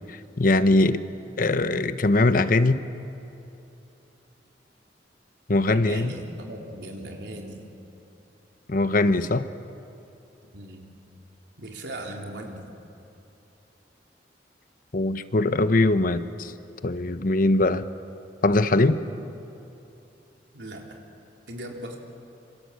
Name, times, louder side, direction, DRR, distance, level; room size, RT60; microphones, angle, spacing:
voice 1, 0.4-1.0 1.4-2.8 5.5-6.1 8.7-9.5 14.9-16.5 16.8-17.9 18.4-19.0, left 2 dB, 50° left, 11 dB, 1.0 m, -21 dB
voice 2, 5.7-7.6 10.5-10.9 11.6-12.7 19.1-19.3 20.5-21.0 21.5-22.0, right 1 dB, 85° right, 1 dB, 3.9 m, -38 dB
26.5 x 26.0 x 8.2 m, 2.8 s
head